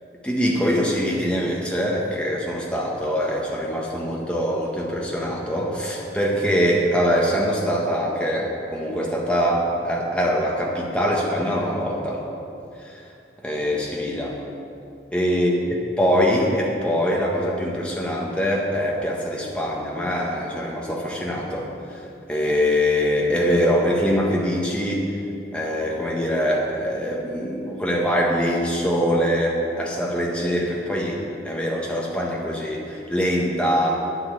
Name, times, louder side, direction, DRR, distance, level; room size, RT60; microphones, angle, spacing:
voice 1, 0.2-12.2 12.8-13.0 13.4-14.3 15.1-21.6 21.9-22.0 22.3-25.0 25.5-31.2 31.4-34.0, equal, 5° left, -3 dB, 1.5 m, -23 dB
9.3 x 8.3 x 7.6 m, 2.7 s
head